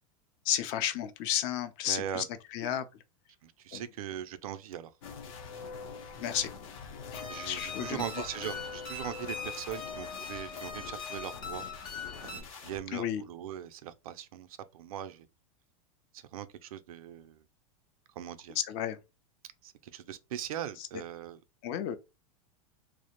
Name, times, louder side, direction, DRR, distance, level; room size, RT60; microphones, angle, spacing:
voice 1, 0.4-2.2 2.5-2.9 3.7-3.8 6.1-6.5 7.1-8.0 12.9-13.2 18.7-19.0 20.8-20.9 21.6-22.0, left 11 dB, 45° left, 0.4 m, -32 dB
voice 2, 1.9-2.3 3.4-4.9 7.3-11.7 12.2-14.5 14.7-15.3 16.1-17.4 18.2-18.6 19.6-21.4, right 10 dB, 80° right, 0.4 m, -40 dB
sound 1, 5.0-12.8, left 5 dB, 75° left, 0.8 m, -45 dB
sound 2, 7.1-12.4, left 5 dB, 25° left, 1.0 m, -41 dB
2.4 x 2.0 x 2.8 m
supercardioid pair, 130°, 18 cm